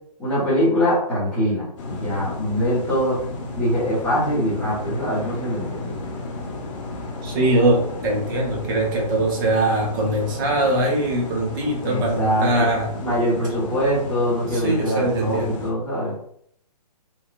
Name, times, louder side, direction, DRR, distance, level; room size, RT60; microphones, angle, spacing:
voice 1, 0.2-3.2 3.5-6.0 11.8-12.7 12.9-16.1, equal, 5° left, -10 dB, 1.3 m, -23 dB
sound 1, 1.8-15.7, left 2 dB, 50° left, 0.8 m, -33 dB
voice 2, 7.2-12.9 14.5-15.6, right 1 dB, 30° right, -1 dB, 0.8 m, -22 dB
3.0 x 2.7 x 2.5 m, 0.67 s
hypercardioid pair, 150°, 21 cm